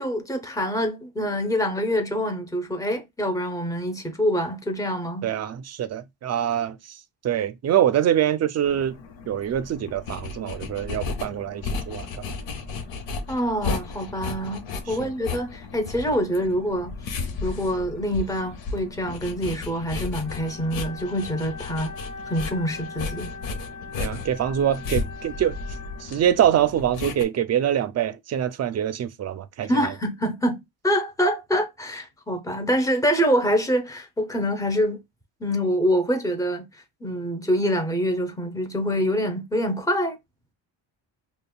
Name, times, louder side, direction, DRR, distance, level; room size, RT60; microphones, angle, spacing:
voice 1, 0.0-5.3 13.3-16.9 17.4-21.9 22.3-23.3 29.6-35.0 35.4-36.7 37.0-40.2, equal, 10° left, 0.7 m, -25 dB
voice 2, 5.2-6.8 7.2-9.0 9.3-12.1 15.0-15.1 24.0-25.6 26.0-29.9, right 10 dB, 40° right, 0.4 m, -24 dB
sound 1, 8.6-27.2, left 4 dB, 85° left, 0.9 m, -34 dB
Wind instrument woodwind instrument, 20.2-26.6, left 4 dB, 40° left, 1.5 m, -41 dB
5.1 x 2.3 x 2.2 m
cardioid pair, 110°, 44 cm